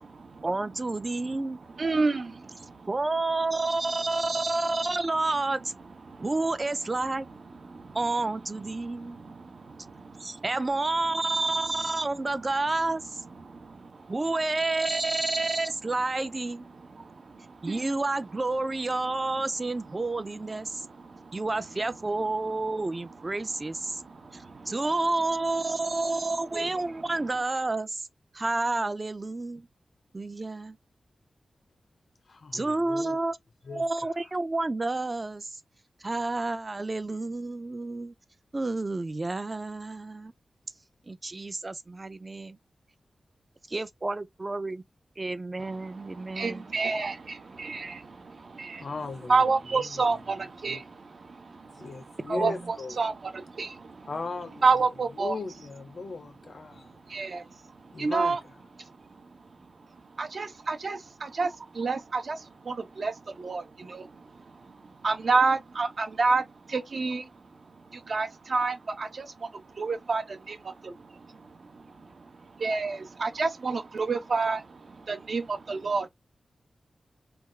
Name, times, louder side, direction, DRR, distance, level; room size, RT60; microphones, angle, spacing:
voice 1, 0.4-1.6 2.9-5.7 6.2-7.3 7.9-9.2 10.2-13.2 14.1-16.7 17.6-20.9 21.3-24.0 24.3-28.0 28.3-29.7 30.1-30.8 32.5-33.4 33.7-35.5 36.0-38.1 38.5-40.3 41.1-42.6 43.7-44.8 45.2-46.7 52.3-52.7, right 2 dB, 30° right, 0.5 m, -30 dB
voice 2, 1.8-2.9 6.1-6.2 7.7-8.0 9.2-10.3 13.5-13.9 17.0-17.1 17.6-17.8 21.0-21.4 24.1-24.7 26.5-26.7 46.1-48.9 49.3-54.1 54.6-55.4 57.1-57.5 58.0-58.4 60.2-64.1 65.0-66.4 66.7-67.3 67.9-69.5 69.7-70.9 71.7-71.8 72.6-76.1, right 4 dB, 55° right, 0.8 m, -29 dB
voice 3, 32.3-33.2 33.6-33.9 48.7-50.1 50.6-50.8 51.7-53.0 54.1-56.9 57.9-58.6, left 4 dB, 55° left, 0.5 m, -38 dB
3.4 x 2.4 x 3.0 m
wide cardioid pair, 105°, 0 cm